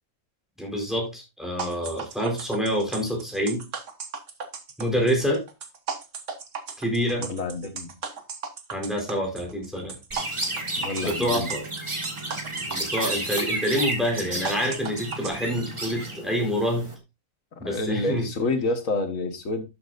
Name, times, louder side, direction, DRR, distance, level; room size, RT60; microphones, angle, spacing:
voice 1, 0.6-3.7 4.8-5.5 6.8-7.3 8.7-10.0 11.0-11.6 12.7-16.9 17.6-18.3, equal, ahead, 4.0 m, -27 dB
sound 1, 1.6-15.3, right 5 dB, 70° right, 1.5 m, -36 dB
voice 2, 7.2-8.0 10.8-11.5 17.6-19.6, left 2 dB, 90° left, 1.9 m, -28 dB
Chirp tweet, 10.1-16.9, right 1 dB, 25° right, 1.6 m, -32 dB
11.5 x 7.2 x 2.5 m
omnidirectional pair, 1.3 m